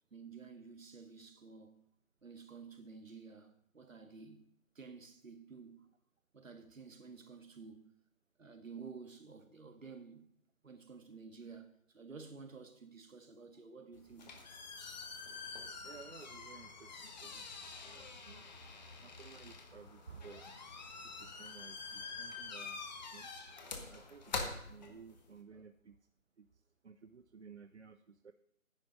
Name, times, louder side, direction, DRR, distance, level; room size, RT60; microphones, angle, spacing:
voice 1, 0.1-1.8 2.2-4.5 4.8-5.9 6.3-7.9 8.4-10.3 10.6-14.3 25.5-25.7, right 5 dB, 70° right, 1.9 m, -52 dB
sound 1, 13.9-25.4, left 4 dB, 30° left, 1.6 m, -46 dB
voice 2, 15.8-17.4 17.8-18.5 19.0-20.5 21.0-22.8 23.1-23.3 23.9-26.0 26.4-26.5 26.8-28.3, right 5 dB, 55° right, 0.7 m, -55 dB
10.5 x 10.0 x 5.3 m
figure-of-eight pair, 155°, 41 cm